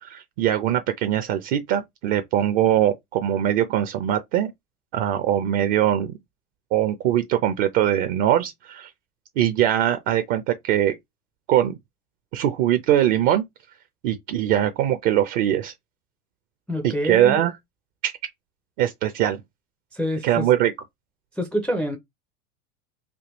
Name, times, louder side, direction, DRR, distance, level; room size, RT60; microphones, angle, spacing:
voice 1, 0.0-4.5 4.9-6.1 6.7-8.9 9.4-11.0 11.5-11.7 12.3-13.4 14.0-15.7 16.8-17.5 18.0-18.1 18.8-19.4 20.2-20.7, right 11 dB, 55° right, 0.6 m, -21 dB
voice 2, 16.7-17.4 19.9-20.6 21.4-22.0, equal, 5° left, 0.4 m, -27 dB
3.5 x 2.2 x 3.0 m
hypercardioid pair, 105°, 44 cm